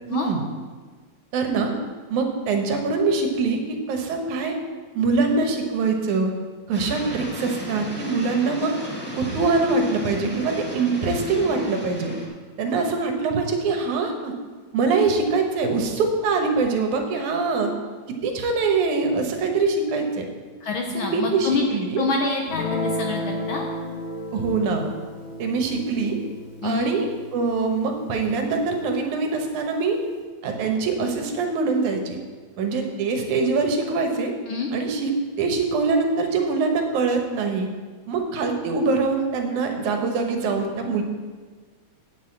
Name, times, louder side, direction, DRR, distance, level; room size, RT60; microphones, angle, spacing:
voice 1, 0.1-0.4 1.3-1.7 2.1-4.6 5.0-6.3 6.7-8.7 9.2-12.1 12.6-14.3 14.7-17.7 18.2-20.3 20.9-22.0 24.3-24.9 25.4-26.2 26.6-30.0 30.4-32.2 32.6-34.3 34.7-35.1 35.4-37.7 38.1-41.0, right 4 dB, 85° right, 4 dB, 2.6 m, -23 dB
sound 1, 6.7-12.3, left 1 dB, 5° left, 0.9 m, -34 dB
voice 2, 20.6-21.6 22.0-23.6 26.6-26.9 34.5-34.7, left 3 dB, 70° left, 2 dB, 1.2 m, -26 dB
Guitar, 22.5-29.1, left 1 dB, 40° left, 1.1 m, -33 dB
9.0 x 6.3 x 7.4 m, 1.4 s
omnidirectional pair, 3.4 m